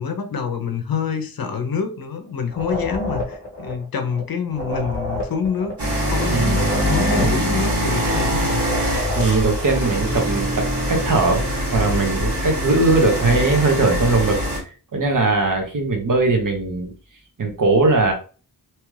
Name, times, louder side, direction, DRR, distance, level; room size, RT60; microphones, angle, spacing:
voice 1, 0.0-8.7 12.6-12.7, left 6 dB, 65° left, 7 dB, 0.6 m, -26 dB
sound 1, 2.5-9.8, left 1 dB, 30° left, 1.0 m, -30 dB
sound 2, 5.8-14.6, equal, 85° right, 1.7 m, -23 dB
voice 2, 6.3-6.7 7.2-7.3 9.2-11.4 11.7-14.4 14.9-16.9 17.4-18.1, right 3 dB, 55° right, 3 dB, 0.8 m, -19 dB
2.9 x 2.3 x 3.2 m, 0.37 s
wide cardioid pair, 130°, 39 cm